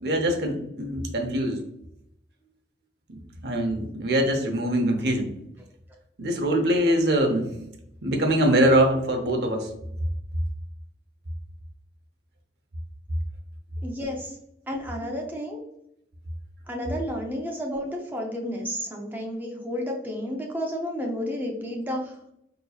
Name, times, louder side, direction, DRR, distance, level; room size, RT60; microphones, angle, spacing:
voice 1, 0.0-1.6 3.1-5.3 6.2-7.5 8.0-9.7, right 1 dB, 65° right, 3 dB, 0.7 m, -23 dB
voice 2, 13.8-14.4 14.7-15.6 16.7-22.1, equal, 10° right, 0 dB, 0.6 m, -31 dB
4.3 x 2.9 x 2.3 m, 0.78 s
head